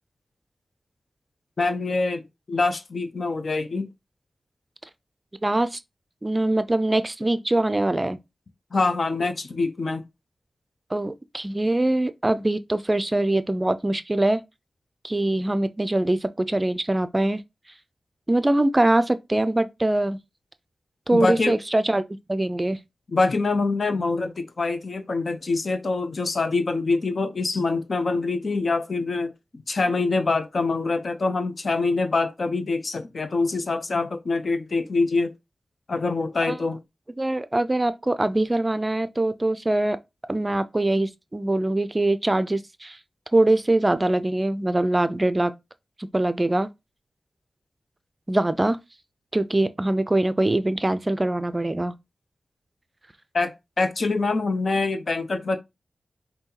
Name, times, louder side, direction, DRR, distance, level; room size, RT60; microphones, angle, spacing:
voice 1, 1.6-3.9 8.7-10.0 21.1-21.6 23.1-29.3 29.7-35.3 35.9-36.8 53.3-55.6, left 3 dB, 60° left, 0.7 m, -25 dB
voice 2, 5.4-5.8 6.2-8.2 10.9-14.4 15.0-17.4 18.3-20.2 21.1-22.0 22.3-22.8 36.5-36.6 37.2-40.0 40.3-43.0 43.3-45.5 46.1-46.7 48.3-48.8 49.3-51.9, right 1 dB, 25° right, 0.4 m, -23 dB
5.4 x 2.7 x 2.8 m
cardioid pair, 55°, 0 cm